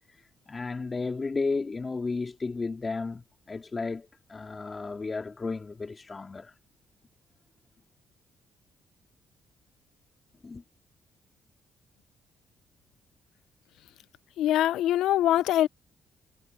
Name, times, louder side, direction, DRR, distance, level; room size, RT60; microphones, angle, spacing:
voice 1, 0.1-6.5 10.4-10.6, left 4 dB, 30° left, 2.4 m, -33 dB
voice 2, 14.4-15.7, left 12 dB, 85° left, 0.6 m, -23 dB
cardioid pair, 90°, 0 cm